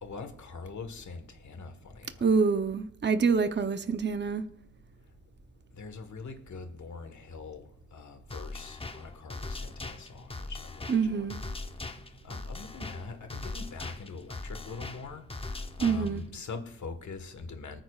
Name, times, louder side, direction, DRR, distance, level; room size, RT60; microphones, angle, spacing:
voice 1, 0.0-2.3 5.8-7.6 7.9-11.4 12.2-17.8, left 4 dB, 75° left, 1.5 m, -43 dB
voice 2, 2.2-4.4 10.9-11.4 15.8-16.2, right 5 dB, 35° right, 0.8 m, -26 dB
sound 1, 8.3-16.3, left 3 dB, 20° left, 0.8 m, -40 dB
25.0 x 9.3 x 2.4 m
wide cardioid pair, 80°, 29 cm